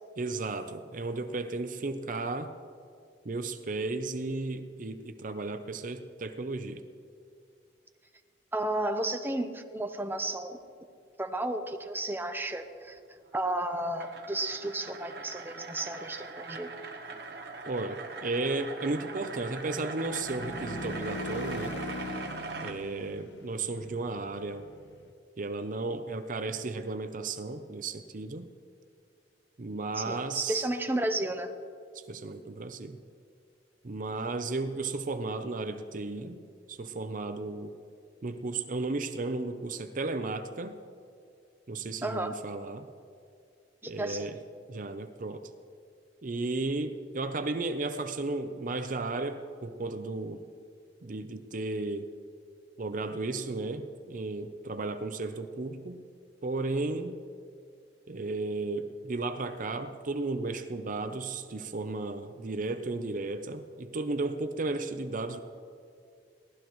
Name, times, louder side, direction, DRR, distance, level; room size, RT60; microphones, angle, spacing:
voice 1, 0.2-2.5 3.2-6.8 17.7-21.8 22.6-24.7 25.4-28.5 29.6-30.6 31.9-33.0 33.8-36.4 36.7-37.7 38.2-40.8 41.7-42.9 43.9-44.4 44.7-45.5 46.2-50.4 51.0-52.1 52.8-56.0 56.4-57.2 58.1-65.4, right 3 dB, 50° right, 9 dB, 0.6 m, -34 dB
voice 2, 8.5-10.6 11.2-13.0 13.3-16.7 30.0-31.5 42.0-42.3 43.8-44.3, right 1 dB, 10° right, 6 dB, 0.8 m, -32 dB
sound 1, 13.3-22.7, right 3 dB, 65° right, 1.1 m, -41 dB
sound 2, 18.7-25.1, left 1 dB, 85° left, 0.9 m, -41 dB
23.0 x 17.0 x 3.1 m, 2.3 s
head